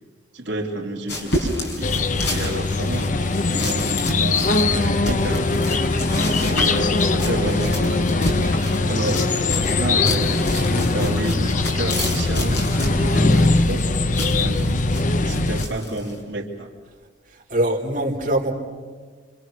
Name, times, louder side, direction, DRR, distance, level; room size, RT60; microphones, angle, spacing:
voice 1, 0.3-1.9 2.3-5.5 6.4-8.1 8.6-9.2 9.5-13.9 14.2-14.8 15.2-16.7, right 1 dB, 70° right, -2 dB, 3.1 m, -30 dB
sound 1, 1.1-16.2, left 1 dB, 60° left, 5.9 m, -30 dB
sound 2, 1.8-15.7, left 3 dB, 40° left, 0.7 m, -21 dB
sound 3, 4.3-13.4, right 1 dB, 5° right, 7.3 m, -38 dB
voice 2, 17.5-18.5, right 1 dB, 45° right, -3 dB, 3.5 m, -22 dB
26.5 x 26.5 x 6.5 m, 1.5 s
head